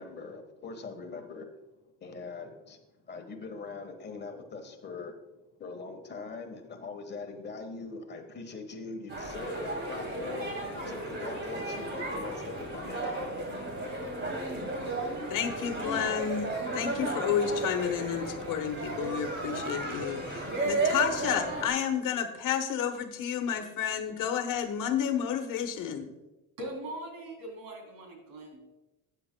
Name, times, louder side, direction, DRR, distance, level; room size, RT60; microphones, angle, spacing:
voice 1, 0.0-1.5 2.0-2.8 3.1-5.1 5.6-13.1, left 4 dB, 30° left, 5 dB, 1.3 m, -42 dB
sound 1, 9.1-21.7, right 2 dB, 35° right, 2.8 m, -34 dB
voice 2, 15.3-16.5 16.7-26.1, left 8 dB, 65° left, 7 dB, 1.2 m, -31 dB
voice 3, 26.6-28.6, right 1 dB, 80° right, 1 dB, 3.3 m, -41 dB
14.0 x 9.2 x 2.2 m, 1.0 s
cardioid pair, 135°, 34 cm